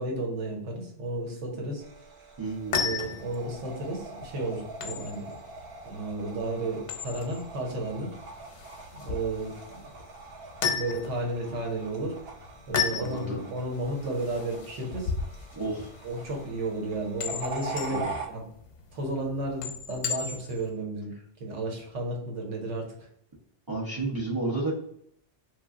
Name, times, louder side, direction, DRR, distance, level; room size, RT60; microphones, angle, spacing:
voice 1, 0.0-1.8 2.7-5.4 5.8-8.1 8.9-9.9 10.7-12.1 12.7-15.3 16.0-18.4 18.9-21.1 21.4-23.1, right 2 dB, 85° right, 1 dB, 1.2 m, -33 dB
sound 1, 1.8-18.3, right 3 dB, 60° right, 0.7 m, -43 dB
sound 2, 2.4-20.7, left 6 dB, 90° left, 0.9 m, -36 dB
voice 2, 2.4-3.0 13.0-13.4 15.5-15.9 17.9-18.2 23.7-24.7, right 2 dB, 30° right, -4 dB, 0.4 m, -31 dB
3.0 x 2.5 x 2.4 m, 0.70 s
omnidirectional pair, 1.2 m